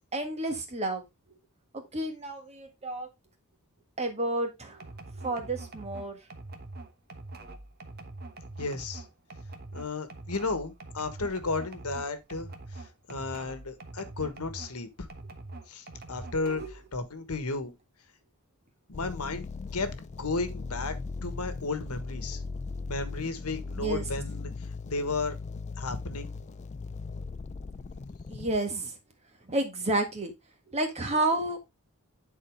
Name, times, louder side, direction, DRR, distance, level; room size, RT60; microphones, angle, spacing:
voice 1, 0.1-1.0 1.7-3.1 4.0-4.8 5.2-6.2 16.5-16.7 23.8-24.0 28.3-28.9 29.5-30.3 30.7-31.6, right 2 dB, 30° right, 1.7 m, -30 dB
sound 1, 4.8-14.8 15.1-16.9, right 2 dB, 45° right, 1.2 m, -44 dB
voice 2, 8.6-9.0 9.7-15.1 15.7-17.7 18.9-19.5 19.7-21.0 21.2-22.4 22.9-25.4 25.8-26.3, left 3 dB, 80° left, 1.4 m, -34 dB
sound 2, 18.9-28.6, left 4 dB, 30° left, 0.4 m, -38 dB
10.0 x 4.4 x 3.5 m
head